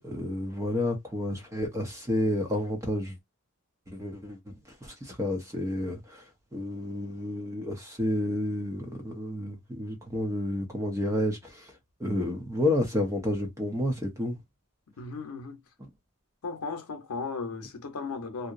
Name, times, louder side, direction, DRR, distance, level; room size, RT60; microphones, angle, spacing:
voice 1, 0.0-3.2 3.9-4.6 4.8-6.2 6.5-11.7 12.0-14.4 15.8-15.9, left 1 dB, 15° right, 0.6 m, -30 dB
voice 2, 15.0-15.6 16.4-18.5, left 4 dB, 85° left, 0.7 m, -36 dB
2.7 x 2.0 x 2.4 m
head